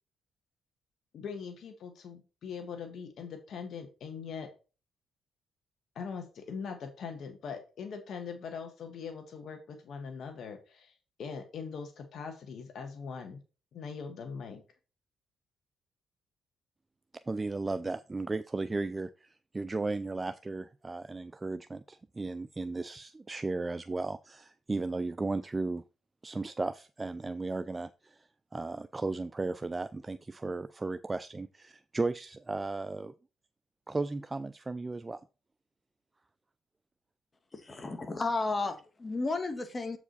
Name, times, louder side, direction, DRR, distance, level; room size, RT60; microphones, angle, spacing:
voice 1, 1.1-4.5 5.9-10.9 11.2-13.4 13.7-14.6, left 6 dB, 65° left, 1.6 m, -41 dB
voice 2, 17.3-25.8 26.2-33.1 33.9-35.2, right 3 dB, 20° right, 0.4 m, -35 dB
voice 3, 37.5-40.0, left 3 dB, 30° left, 1.5 m, -33 dB
7.9 x 4.9 x 4.1 m
cardioid pair, 90°, 0 cm